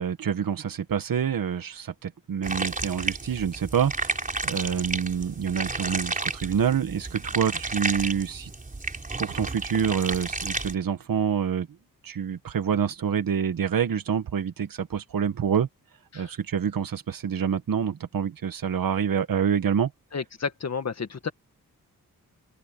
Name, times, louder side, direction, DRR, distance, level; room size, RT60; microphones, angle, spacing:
voice 1, 0.0-8.5 9.2-11.7 12.0-15.7 16.1-19.9, right 7 dB, 70° right, 1.8 m, -27 dB
sound 1, 2.4-10.7, right 3 dB, 25° right, 4.4 m, -32 dB
voice 2, 20.1-21.3, left 5 dB, 50° left, 1.9 m, -31 dB
open air
wide cardioid pair, 135°, 35 cm